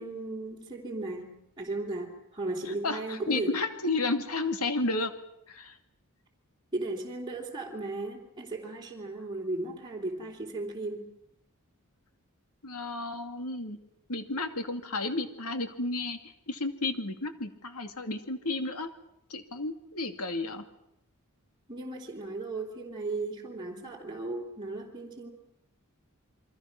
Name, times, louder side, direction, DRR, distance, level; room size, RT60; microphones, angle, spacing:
voice 1, 0.0-3.5 6.7-11.1 21.7-25.3, right 2 dB, 20° right, -2 dB, 3.2 m, -36 dB
voice 2, 2.7-5.1 5.5-5.8 12.6-13.8 14.1-18.9 19.3-20.6, left 2 dB, 85° left, 7 dB, 2.5 m, -32 dB
28.5 x 24.0 x 6.1 m, 0.77 s
head